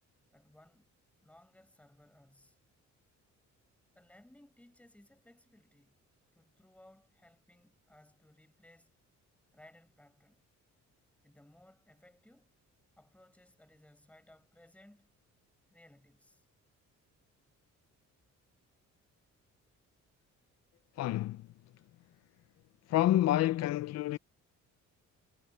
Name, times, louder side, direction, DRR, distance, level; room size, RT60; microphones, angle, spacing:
voice 1, 0.3-0.9 1.2-2.6 3.9-6.0 6.3-8.9 9.5-10.4 11.2-12.5 13.0-15.1 15.7-16.4, left 1 dB, 5° left, 6.5 m, -61 dB
voice 2, 21.0-21.5 22.9-24.2, left 14 dB, 60° left, 0.5 m, -28 dB
cardioid pair, 175°, 31 cm